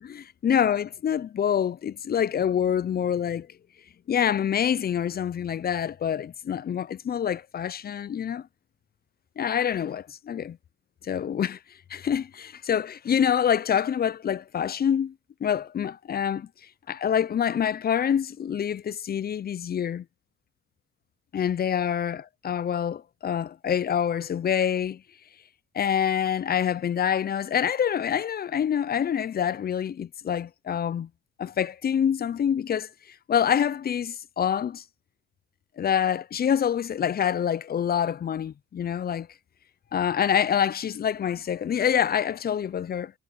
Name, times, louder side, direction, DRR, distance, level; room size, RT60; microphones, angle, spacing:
voice 1, 0.0-3.5 4.1-8.4 9.4-10.6 11.0-11.6 11.9-15.1 15.4-16.5 16.9-20.0 21.3-25.0 25.7-31.1 31.4-32.9 33.3-34.8 35.8-39.3 39.9-43.1, left 8 dB, 30° left, 0.4 m, -26 dB
cardioid pair, 90°, 30 cm